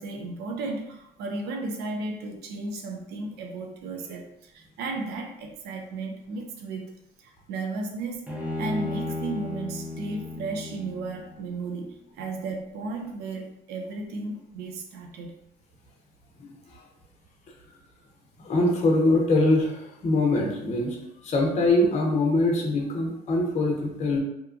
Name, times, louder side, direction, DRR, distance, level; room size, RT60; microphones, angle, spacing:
voice 1, 0.0-6.9 7.2-8.3 8.6-15.3, right 3 dB, 80° right, 2 dB, 0.5 m, -34 dB
Bowed string instrument, 8.3-11.5, left 2 dB, 10° right, 0.6 m, -34 dB
voice 2, 18.4-21.0 21.2-24.2, left 2 dB, 40° left, -1 dB, 0.6 m, -23 dB
2.8 x 2.2 x 2.5 m, 0.81 s
cardioid pair, 110°, 17 cm